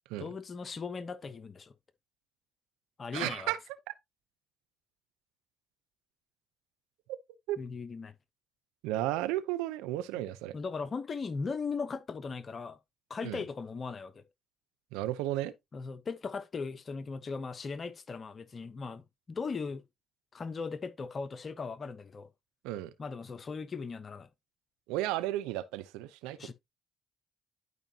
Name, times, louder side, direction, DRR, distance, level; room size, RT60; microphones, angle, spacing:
voice 1, 0.2-1.7 3.0-3.5 7.6-8.1 10.2-10.3 10.5-12.8 13.1-14.3 15.7-19.8 20.3-22.3 23.0-24.3 26.4-26.5, left 4 dB, 40° left, 1.0 m, -38 dB
voice 2, 3.1-3.6 7.5-7.6 8.8-10.5 13.2-13.4 14.9-15.5 22.6-22.9 24.9-26.5, right 15 dB, 85° right, 0.8 m, -33 dB
11.0 x 5.1 x 2.9 m
supercardioid pair, 60°, 0 cm